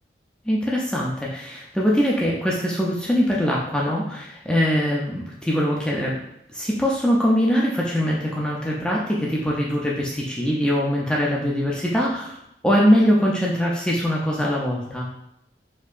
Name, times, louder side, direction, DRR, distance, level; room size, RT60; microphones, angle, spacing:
voice 1, 0.5-6.2 6.5-12.4 12.6-15.1, equal, 5° left, -4 dB, 0.4 m, -22 dB
4.3 x 2.7 x 2.4 m, 0.79 s
head